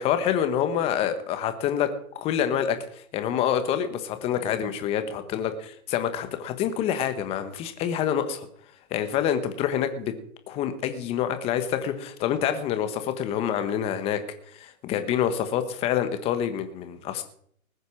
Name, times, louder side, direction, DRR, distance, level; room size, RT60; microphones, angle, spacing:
voice 1, 0.0-8.5 8.9-10.1 10.5-14.2 14.5-17.2, left 9 dB, 15° left, 9 dB, 1.2 m, -27 dB
19.5 x 8.1 x 6.4 m, 0.63 s
hypercardioid pair, 155°, 43 cm